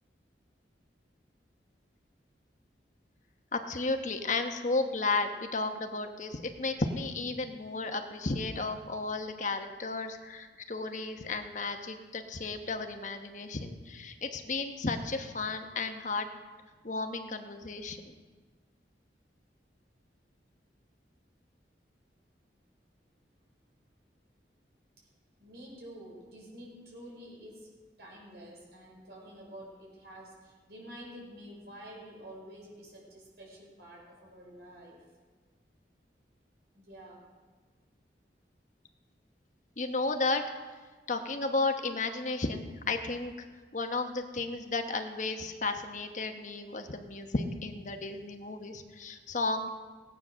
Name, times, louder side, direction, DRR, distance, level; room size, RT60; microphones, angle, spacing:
voice 1, 3.5-16.3 16.8-18.1 39.8-40.4 41.1-43.5 43.7-49.7, left 3 dB, 45° left, 6 dB, 1.1 m, -33 dB
voice 2, 25.4-27.7 28.0-35.0 36.7-37.2, equal, 70° right, -3 dB, 5.5 m, -49 dB
17.5 x 9.1 x 6.4 m, 1.4 s
head